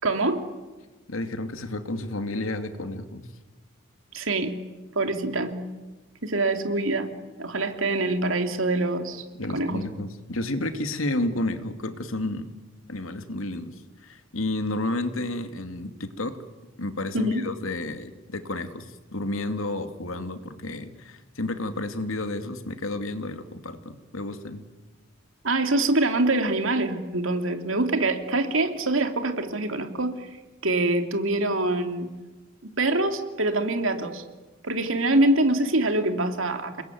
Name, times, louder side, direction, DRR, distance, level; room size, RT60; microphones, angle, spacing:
voice 1, 0.0-0.5 4.1-4.6 4.9-5.6 6.2-7.1 7.4-9.2 9.5-9.8 17.1-17.4 25.4-30.3 30.6-32.1 32.6-34.2 34.6-36.8, right 2 dB, 75° right, 7 dB, 2.9 m, -25 dB
voice 2, 1.1-3.3 9.4-12.5 12.9-16.4 16.8-24.7, left 2 dB, 80° left, 8 dB, 2.5 m, -31 dB
29.5 x 21.0 x 9.4 m, 1.2 s
head